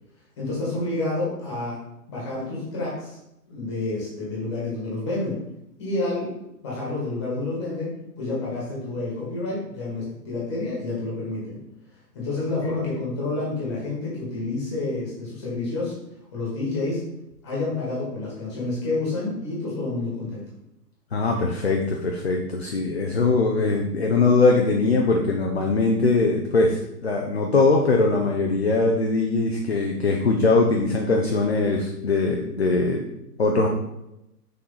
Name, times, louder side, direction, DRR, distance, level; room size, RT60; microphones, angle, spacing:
voice 1, 0.4-1.8 2.1-3.2 3.5-5.4 5.8-6.3 6.6-11.6 12.1-15.9 16.3-17.0 17.4-20.4, left 2 dB, 15° left, -5 dB, 1.5 m, -29 dB
voice 2, 21.1-33.0 33.4-33.7, left 3 dB, 45° left, 1 dB, 0.5 m, -21 dB
6.2 x 4.3 x 4.0 m, 0.86 s
hypercardioid pair, 180°, 48 cm